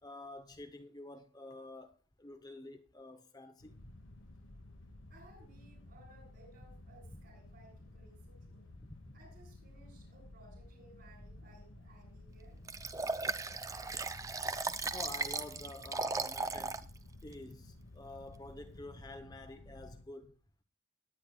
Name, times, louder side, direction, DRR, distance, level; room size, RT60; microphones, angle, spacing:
voice 1, 0.0-3.9 7.1-7.2 8.9-9.2 14.6-16.8 17.2-20.4, left 2 dB, 20° left, 0.8 m, -49 dB
sound 1, 3.6-20.1, left 1 dB, 70° left, 1.2 m, -54 dB
voice 2, 5.1-8.7 9.1-12.6, right 1 dB, 50° right, 7.1 m, -61 dB
Liquid, 12.7-16.8 17.3-17.4, right 4 dB, 15° right, 0.4 m, -37 dB
18.5 x 9.7 x 2.3 m
head